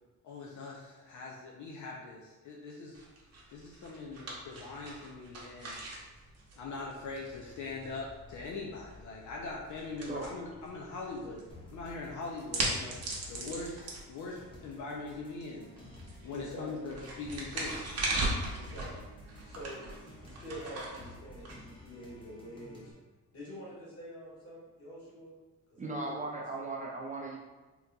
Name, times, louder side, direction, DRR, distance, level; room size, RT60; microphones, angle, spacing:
voice 1, 0.2-3.0 3.5-5.8 6.6-15.9 16.2-17.8 20.3-20.4, left 3 dB, 70° left, -2 dB, 0.5 m, -42 dB
sound 1, 2.9-22.2, right 2 dB, 55° right, 0.8 m, -40 dB
sound 2, 11.5-22.9, left 1 dB, 15° left, 0.6 m, -52 dB
voice 2, 16.3-16.8 18.6-19.0 19.4-19.9 20.2-22.9 23.3-25.3 25.7-26.4, equal, 45° left, -6 dB, 1.4 m, -46 dB
voice 3, 25.8-27.4, right 2 dB, 25° right, -2 dB, 0.4 m, -37 dB
3.8 x 2.8 x 2.2 m, 1.2 s
cardioid pair, 140°, 31 cm